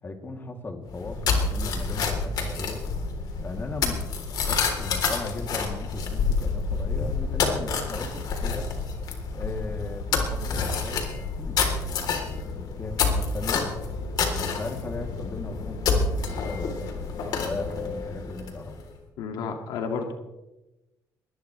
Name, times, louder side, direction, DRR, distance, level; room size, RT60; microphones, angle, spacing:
voice 1, 0.0-2.8 3.4-8.7 9.3-13.7 14.3-16.9 17.3-18.8, left 2 dB, 30° left, 3 dB, 2.8 m, -37 dB
sound 1, 0.9-18.8, left 4 dB, 65° left, 3.5 m, -28 dB
voice 2, 19.2-20.1, left 5 dB, 80° left, 4 dB, 2.1 m, -31 dB
22.0 x 19.5 x 3.3 m, 1.0 s
cardioid pair, 115°, 7 cm